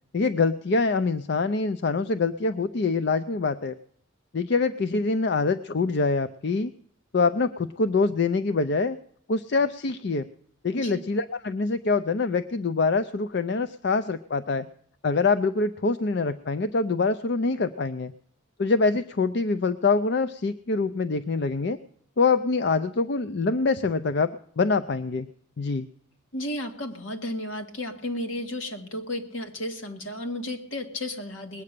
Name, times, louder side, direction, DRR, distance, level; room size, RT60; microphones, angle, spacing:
voice 1, 0.1-3.7 4.3-6.7 7.1-9.0 9.3-10.3 10.6-14.7 15.0-18.1 18.6-21.8 22.2-24.3 24.6-25.3 25.6-25.9, left 4 dB, 55° left, 12 dB, 0.5 m, -25 dB
voice 2, 26.3-31.6, left 1 dB, 75° left, 4 dB, 1.9 m, -33 dB
20.0 x 8.6 x 6.7 m, 0.66 s
head